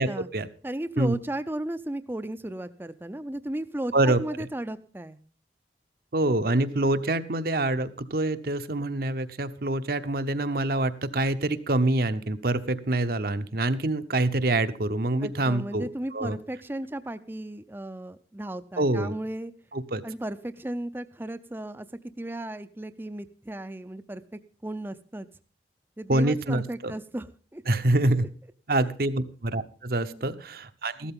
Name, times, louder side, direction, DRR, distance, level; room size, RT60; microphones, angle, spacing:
voice 1, 0.6-5.2 15.2-19.5 20.0-21.9 22.2-25.3 26.0-27.6 30.0-30.3, right 1 dB, 10° right, 12 dB, 0.5 m, -35 dB
voice 2, 6.1-16.4 18.8-19.1 19.7-20.0 26.1-26.9 27.7-28.3 28.7-31.1, right 2 dB, 55° right, 11 dB, 0.8 m, -26 dB
15.0 x 12.5 x 3.7 m, 0.40 s
head